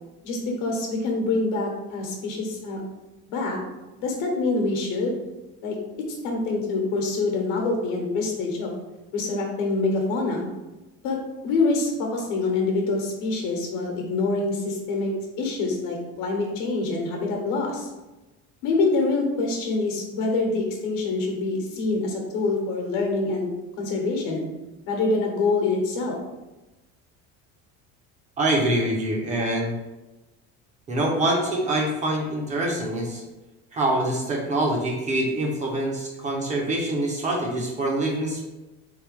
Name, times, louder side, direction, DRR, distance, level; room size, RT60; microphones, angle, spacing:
voice 1, 0.2-2.8 3.3-3.6 4.0-5.1 5.6-5.8 6.2-8.7 9.1-10.5 11.0-11.2 11.4-15.1 15.4-17.9 18.6-23.5 23.8-24.5 24.9-26.2, left 3 dB, 70° left, 1 dB, 1.0 m, -25 dB
voice 2, 28.4-29.8 30.9-33.2 33.7-38.4, right 1 dB, 25° right, -1 dB, 0.4 m, -25 dB
3.4 x 3.2 x 3.1 m, 1.0 s
cardioid pair, 170°, 32 cm